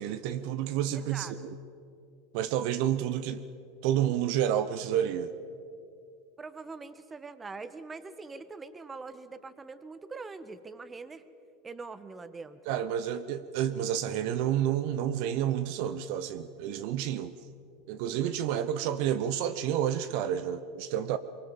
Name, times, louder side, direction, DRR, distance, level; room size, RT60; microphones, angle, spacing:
voice 1, 0.0-1.6 2.3-3.4 3.8-5.3 12.7-17.3 17.9-21.2, right 10 dB, 60° right, 12 dB, 0.9 m, -30 dB
voice 2, 0.9-1.3 6.4-11.2 11.6-12.6, right 4 dB, 20° right, 13 dB, 1.4 m, -43 dB
23.5 x 23.5 x 7.3 m, 2.5 s
hypercardioid pair, 95°, 0 cm